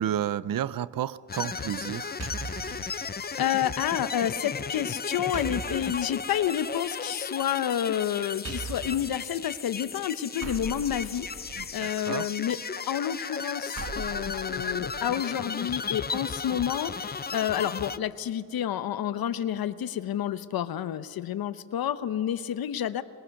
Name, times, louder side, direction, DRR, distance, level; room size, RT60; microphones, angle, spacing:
voice 1, 0.0-2.2 11.6-12.3, right 10 dB, 70° right, 0.7 m, -31 dB
sound 1, 1.3-18.0, left 5 dB, 25° left, 0.6 m, -35 dB
sound 2, 2.2-2.9 5.3-6.0 8.4-9.2 10.4-11.8 13.8-15.2, right 5 dB, 45° right, 1.3 m, -39 dB
voice 2, 2.7-3.0 3.4-11.3 11.7-12.6 12.9-23.0, left 10 dB, 85° left, 0.8 m, -29 dB
24.5 x 21.5 x 6.5 m
cardioid pair, 95°, 35 cm